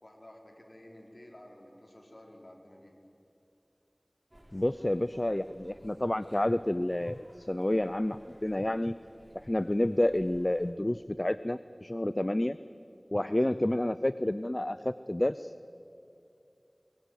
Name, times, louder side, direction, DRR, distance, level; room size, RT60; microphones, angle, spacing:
voice 1, 0.0-3.0 13.3-13.4, left 1 dB, 55° left, 1 dB, 4.4 m, -52 dB
sound 1, 4.3-10.7, right 1 dB, 35° right, 3.6 m, -58 dB
voice 2, 4.5-9.0 9.5-12.6 13.1-15.7, left 1 dB, 40° left, 14 dB, 0.6 m, -29 dB
23.0 x 22.5 x 9.3 m, 2.7 s
wide cardioid pair, 40°, 0 cm